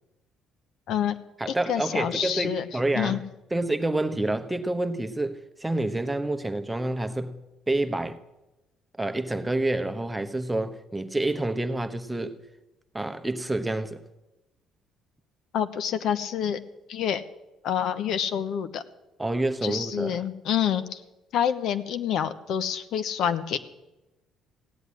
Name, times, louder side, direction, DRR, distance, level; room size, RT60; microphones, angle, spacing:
voice 1, 0.9-1.2 1.7-2.6 2.9-3.2 15.5-16.6 16.9-17.2 17.6-18.8 19.6-21.0 21.3-23.6, left 9 dB, 70° left, 1.0 m, -27 dB
voice 2, 1.4-3.2 3.5-8.2 9.0-12.4 12.9-14.0 19.2-20.3, right 2 dB, 10° right, 1.1 m, -28 dB
16.5 x 8.3 x 9.7 m
cardioid pair, 95°, 0 cm